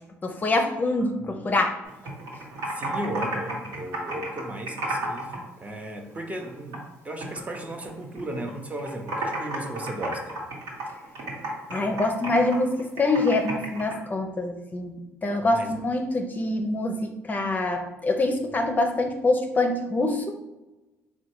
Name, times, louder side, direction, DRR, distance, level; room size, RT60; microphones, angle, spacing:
voice 1, 0.2-1.8 11.7-20.4, left 2 dB, 30° left, 4 dB, 0.5 m, -25 dB
Computer keyboard, 1.8-5.4 5.7-6.9 7.2-8.5 8.8-14.0, right 2 dB, 80° right, 1.2 m, -33 dB
voice 2, 2.6-10.4 15.5-15.7, right 1 dB, 25° right, 3 dB, 0.7 m, -35 dB
3.8 x 2.2 x 4.5 m, 1.0 s
supercardioid pair, 75°, 6 cm